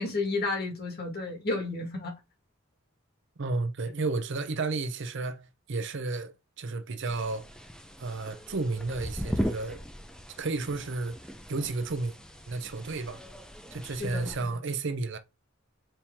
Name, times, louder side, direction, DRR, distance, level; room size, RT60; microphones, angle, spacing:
voice 1, 0.0-2.1 14.0-14.3, left 3 dB, 50° left, 1.7 m, -31 dB
voice 2, 3.4-7.5 8.0-9.8 10.4-11.2 11.5-12.1 12.5-13.2 13.7-15.2, right 3 dB, 60° right, 0.6 m, -32 dB
sound 1, 7.0-14.4, equal, 5° left, 0.5 m, -38 dB
4.3 x 2.9 x 3.5 m
head